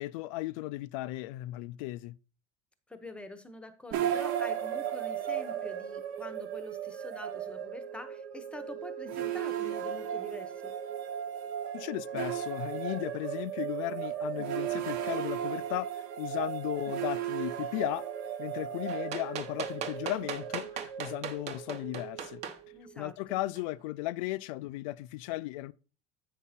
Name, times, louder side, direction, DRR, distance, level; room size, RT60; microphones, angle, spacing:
voice 1, 0.0-2.2 11.7-18.1 18.4-22.4 23.0-25.7, left 17 dB, 90° left, 0.4 m, -36 dB
voice 2, 2.9-10.7 22.7-23.4, left 2 dB, 5° left, 0.8 m, -46 dB
sound 1, 3.9-23.0, right 10 dB, 65° right, 1.1 m, -36 dB
sound 2, 18.9-22.6 23.5-23.6, right 7 dB, 45° right, 1.0 m, -38 dB
8.4 x 5.5 x 4.2 m
cardioid pair, 155°, 17 cm